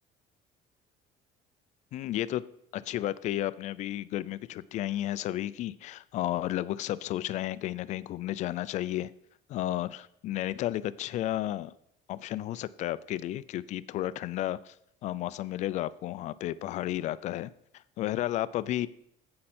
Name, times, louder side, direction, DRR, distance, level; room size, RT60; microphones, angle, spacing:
voice 1, 1.9-2.4 2.7-9.1 9.5-11.7 12.1-14.7 15.0-17.5 18.0-18.9, left 14 dB, 45° left, 17 dB, 0.4 m, -32 dB
9.8 x 7.6 x 4.3 m, 0.74 s
cardioid pair, 170°, 17 cm